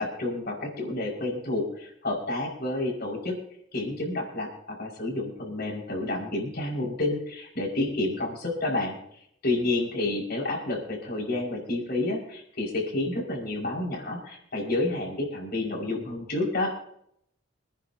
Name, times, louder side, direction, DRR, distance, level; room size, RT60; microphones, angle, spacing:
voice 1, 0.0-3.3 3.7-9.0 9.4-16.7, left 2 dB, 55° left, -2 dB, 5.6 m, -29 dB
26.5 x 10.0 x 2.9 m, 0.71 s
head